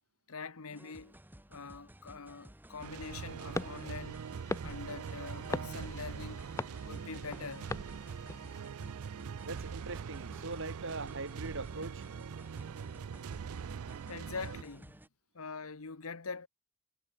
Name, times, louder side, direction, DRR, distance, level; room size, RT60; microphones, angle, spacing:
voice 1, 0.3-1.1 1.5-4.2 4.6-6.5 6.8-7.7 14.1-15.0 15.3-16.5, left 4 dB, 75° left, 1.2 m, -44 dB
sound 1, 0.7-15.1, equal, 10° right, 3.3 m, -55 dB
sound 2, 2.8-14.6, right 6 dB, 80° right, 0.4 m, -43 dB
sound 3, 3.5-8.7, left 2 dB, 15° left, 0.4 m, -42 dB
voice 2, 9.4-12.1, right 3 dB, 60° right, 3.4 m, -41 dB
head